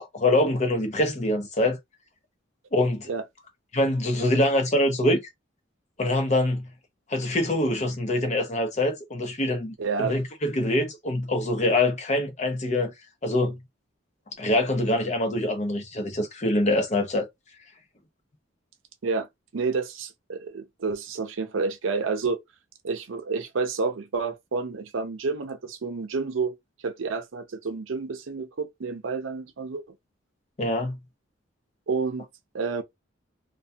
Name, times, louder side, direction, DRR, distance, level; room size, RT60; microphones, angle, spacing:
voice 1, 0.0-1.8 2.7-3.1 3.7-5.2 6.0-6.7 7.1-12.9 13.2-13.6 14.4-17.3 30.6-31.0, left 1 dB, 35° left, 0.7 m, -24 dB
voice 2, 9.8-10.2 19.0-19.3 19.5-22.4 22.8-26.5 26.8-29.8 31.9-32.3 32.5-32.8, right 4 dB, 85° right, 0.6 m, -29 dB
2.7 x 2.3 x 2.3 m
head